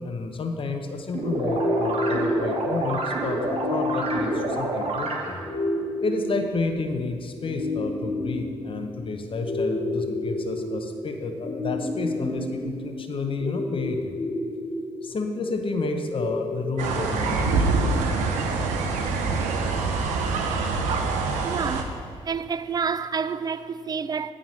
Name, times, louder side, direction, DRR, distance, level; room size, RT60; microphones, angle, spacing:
voice 1, 0.0-5.4 6.0-14.1 15.0-17.8, left 3 dB, 45° left, 0.9 m, -30 dB
sound 1, 1.1-5.5, right 2 dB, 55° right, 1.2 m, -28 dB
sound 2, 1.4-17.4, left 1 dB, 25° left, 2.1 m, -31 dB
sound 3, 16.8-21.8, right 4 dB, 85° right, 0.7 m, -25 dB
voice 2, 21.4-21.9 22.3-24.3, right 6 dB, 35° right, 0.4 m, -28 dB
9.1 x 3.7 x 6.3 m
supercardioid pair, 50°, 12 cm